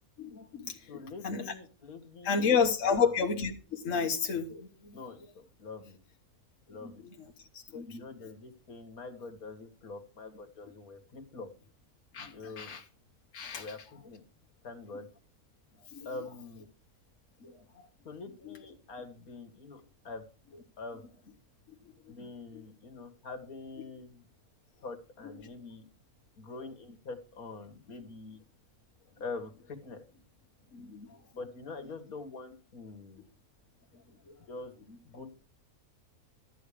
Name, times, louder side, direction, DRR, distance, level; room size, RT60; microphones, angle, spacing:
voice 1, 0.2-0.8 1.2-1.5 2.2-5.0 6.8-7.3 7.5-8.0 12.1-12.8 13.3-13.7 15.9-16.1 17.4-17.9 18.4-18.6 22.5-22.6 30.7-31.1 34.3-34.4, left 6 dB, 60° left, 1.6 m, -31 dB
voice 2, 0.9-3.1 4.9-6.0 6.7-7.1 7.9-11.5 12.3-12.8 13.5-14.2 14.6-15.1 16.1-16.7 18.0-20.2 20.8-21.1 22.1-24.3 24.8-25.9 26.4-28.4 29.2-30.0 31.4-33.2 34.5-34.7 35.0-35.3, left 3 dB, 75° left, 2.1 m, -44 dB
13.0 x 8.6 x 5.0 m
omnidirectional pair, 1.6 m